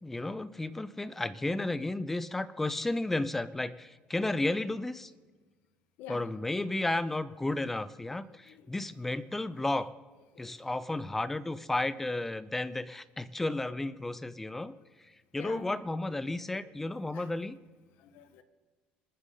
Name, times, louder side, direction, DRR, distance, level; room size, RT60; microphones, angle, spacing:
voice 1, 0.0-5.1 6.1-9.9 10.4-14.8 15.3-17.6, left 2 dB, 10° left, 15 dB, 0.5 m, -33 dB
voice 2, 15.4-15.7 17.1-17.3 18.0-18.4, left 8 dB, 80° left, 10 dB, 1.3 m, -46 dB
26.5 x 9.8 x 3.9 m, 1.4 s
cardioid pair, 155°, 3 cm